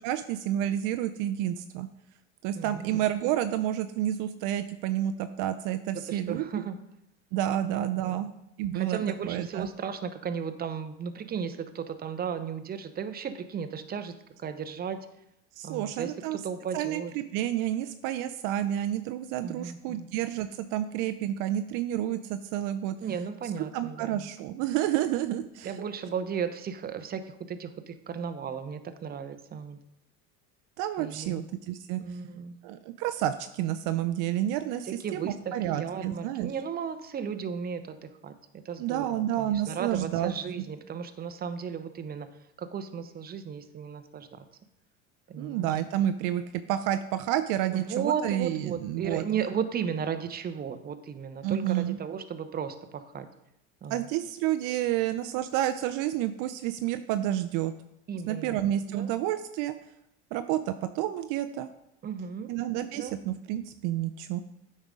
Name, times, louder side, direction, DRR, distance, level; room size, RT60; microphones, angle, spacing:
voice 1, 0.0-1.9 2.4-6.4 7.3-8.3 8.6-9.0 9.2-9.7 15.6-16.4 16.7-23.0 23.7-25.7 30.8-32.2 32.6-36.5 38.8-40.3 45.4-49.2 51.4-52.0 53.9-57.7 58.3-59.7 60.3-61.7 62.5-64.4, right 12 dB, 60° right, 9 dB, 0.5 m, -30 dB
voice 2, 2.5-3.0 5.9-6.8 8.0-8.3 8.7-14.1 14.4-15.1 15.6-17.1 19.4-20.1 23.0-24.3 25.6-29.8 31.0-31.4 32.0-32.6 34.8-39.1 39.4-42.3 42.6-44.4 45.3-45.7 47.7-53.3 53.8-54.0 58.1-58.6 58.9-59.1 62.0-62.5 62.9-63.2, right 7 dB, 25° right, 9 dB, 0.7 m, -35 dB
8.7 x 5.4 x 3.6 m, 0.83 s
supercardioid pair, 95°, 35 cm